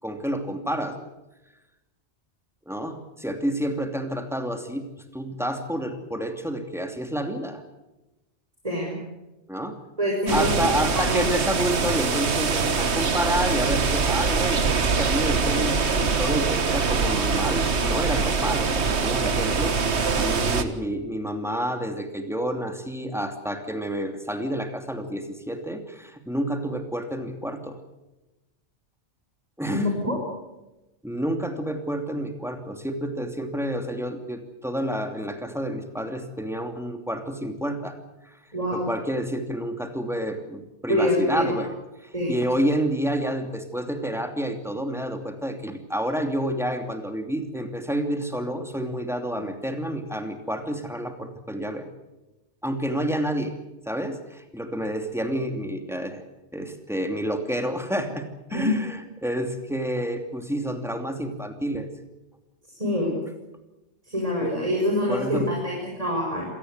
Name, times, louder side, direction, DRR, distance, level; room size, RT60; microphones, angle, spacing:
voice 1, 0.0-1.0 2.7-4.9 5.1-7.6 9.5-9.8 10.3-27.8 29.6-29.9 31.0-38.0 38.2-38.3 38.7-41.7 42.0-51.9 52.6-53.6 53.9-56.2 56.5-61.9 64.4-64.5 65.1-65.5, equal, ahead, 6 dB, 2.8 m, -29 dB
voice 2, 8.6-8.9 10.0-11.3 29.7-30.2 38.5-38.9 40.9-41.6 42.1-42.3 58.5-58.7 62.8-63.1 64.1-66.5, left 1 dB, 30° right, -2 dB, 6.8 m, -25 dB
sound 1, 10.3-20.6, right 4 dB, 70° right, 1.8 m, -23 dB
26.5 x 18.5 x 8.2 m, 1.0 s
omnidirectional pair, 1.2 m